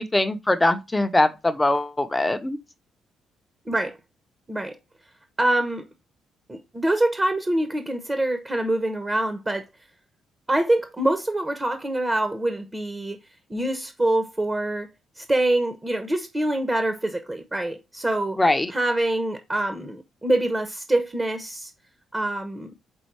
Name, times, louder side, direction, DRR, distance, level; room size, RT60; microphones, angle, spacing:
voice 1, 0.0-2.6 18.4-18.7, left 2 dB, 15° left, 0.8 m, -22 dB
voice 2, 3.7-4.0 4.5-4.8 5.4-5.9 6.5-9.6 10.5-13.2 13.5-14.9 15.2-18.4 18.7-21.7 22.1-22.7, right 1 dB, 20° right, 1.0 m, -25 dB
5.4 x 4.0 x 4.6 m
cardioid pair, 90°, 0 cm